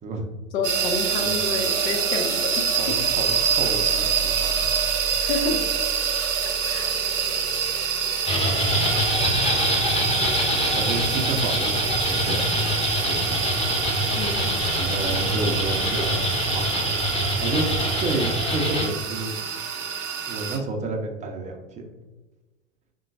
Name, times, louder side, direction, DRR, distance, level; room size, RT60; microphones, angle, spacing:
voice 1, 0.5-3.0 4.8-5.6 6.6-6.9 14.1-14.5, left 4 dB, 55° left, 4 dB, 1.0 m, -29 dB
sound 1, 0.6-20.6, right 7 dB, 70° right, 0.9 m, -26 dB
voice 2, 2.8-4.0 4.3-4.9 5.5-5.6 10.7-12.8 13.1-13.4 14.8-16.3 16.5-16.6 17.4-17.7 17.9-19.4 20.3-21.9, right 2 dB, 20° right, 3 dB, 0.7 m, -30 dB
sound 2, 8.3-18.9, left 1 dB, 15° left, 1.2 m, -25 dB
5.6 x 3.7 x 2.6 m, 1.2 s
figure-of-eight pair, 95°, 39 cm